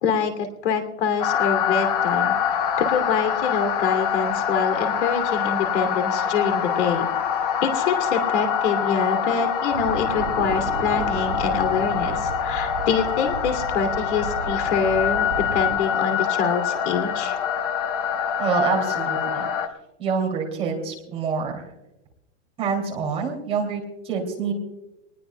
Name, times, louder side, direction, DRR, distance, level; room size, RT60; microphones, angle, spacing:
voice 1, 0.0-2.3 2.8-7.1 7.6-15.3 15.5-17.4, left 6 dB, 65° left, 6 dB, 2.9 m, -25 dB
sound 1, 1.2-19.7, left 8 dB, 35° left, 1.1 m, -25 dB
sound 2, 9.7-15.8, right 6 dB, 70° right, 2.6 m, -34 dB
voice 2, 18.4-19.5 20.0-21.6 22.6-24.5, right 5 dB, 15° right, -1 dB, 2.8 m, -26 dB
25.5 x 20.0 x 2.3 m, 0.94 s
supercardioid pair, 175°, 36 cm